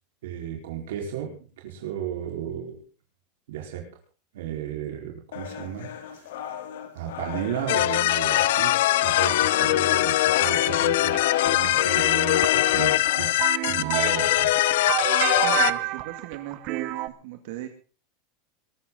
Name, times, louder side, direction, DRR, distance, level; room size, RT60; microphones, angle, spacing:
voice 1, 0.2-1.4 1.6-2.8 3.5-3.8 4.3-6.3 6.9-11.2 11.4-14.5, right 9 dB, 85° right, 1 dB, 4.4 m, -34 dB
sound 1, 5.3-13.3, left 9 dB, 90° left, 3.4 m, -35 dB
sound 2, 7.7-15.7, left 15 dB, 70° left, 0.9 m, -22 dB
sound 3, 10.7-17.1, right 17 dB, 35° right, 1.0 m, -29 dB
voice 2, 15.4-17.7, right 13 dB, 55° right, 6 dB, 2.1 m, -37 dB
22.0 x 13.5 x 3.9 m, 0.36 s
supercardioid pair, 175°, 0 cm